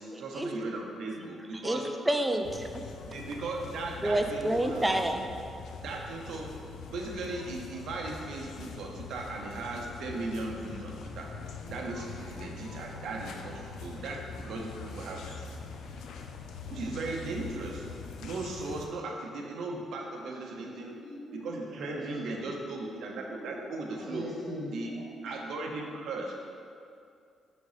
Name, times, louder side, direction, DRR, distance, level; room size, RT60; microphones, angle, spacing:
voice 1, 0.0-1.9 3.1-4.9 5.8-6.5 6.9-11.3 11.7-15.4 16.7-17.8 18.2-21.0 21.3-24.3 24.7-24.9 25.2-26.3, right 3 dB, 65° right, 0 dB, 0.7 m, -37 dB
voice 2, 2.1-2.8 4.0-5.3, right 1 dB, 5° right, 5 dB, 0.3 m, -28 dB
sound 1, 2.4-18.9, left 4 dB, 70° left, 0.4 m, -43 dB
voice 3, 21.0-22.0 23.3-26.0, left 1 dB, 20° left, -8 dB, 1.4 m, -42 dB
5.0 x 4.0 x 4.8 m, 2.4 s
cardioid pair, 155°, 0 cm